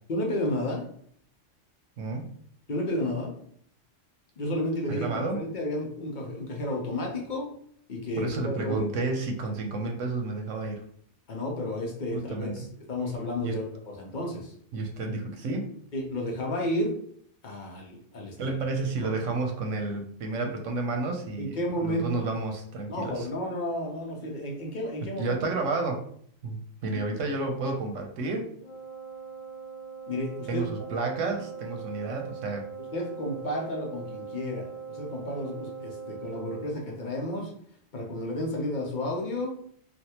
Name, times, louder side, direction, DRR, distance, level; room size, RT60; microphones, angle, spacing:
voice 1, 0.1-0.9 2.7-3.3 4.4-7.5 7.9-8.9 11.3-14.5 15.9-16.9 17.4-18.6 19.0-19.1 20.4-20.5 21.4-22.3 22.9-25.4 30.1-30.7 31.2-31.3 32.9-37.5 37.9-39.6, left 1 dB, 45° left, -1 dB, 0.8 m, -32 dB
voice 2, 2.0-2.3 4.9-5.4 8.2-10.8 12.1-12.7 13.4-13.5 14.7-15.7 18.4-21.6 21.8-23.3 25.2-26.1 26.4-28.5 30.5-32.7, right 3 dB, 90° right, 3 dB, 1.0 m, -31 dB
Wind instrument woodwind instrument, 28.6-36.8, right 6 dB, 75° left, 1.1 m, -41 dB
3.4 x 2.4 x 2.8 m, 0.62 s
omnidirectional pair, 1.3 m